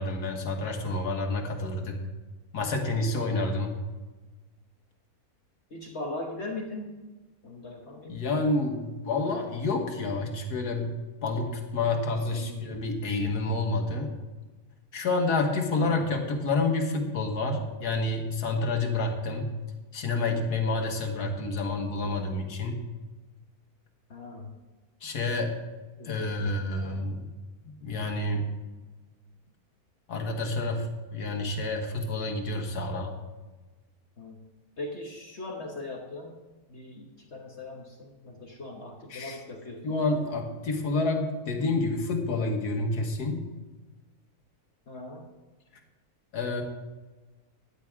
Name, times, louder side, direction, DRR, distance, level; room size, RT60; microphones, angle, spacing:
voice 1, 0.0-2.0 2.5-3.8 8.1-10.9 11.2-14.1 14.9-19.5 19.9-22.8 25.0-25.5 26.1-27.2 27.8-28.5 30.1-30.9 31.1-33.1 39.1-39.4 39.8-43.4 46.3-46.6, left 2 dB, 90° left, 3 dB, 2.0 m, -29 dB
voice 2, 5.7-6.9 7.4-8.3 12.3-12.6 15.7-16.1 24.1-24.5 26.0-27.0 34.2-34.4 34.8-36.4 36.7-40.0 44.9-45.3, left 2 dB, 45° left, 1 dB, 1.5 m, -40 dB
14.0 x 10.0 x 3.6 m, 1.2 s
omnidirectional pair, 1.6 m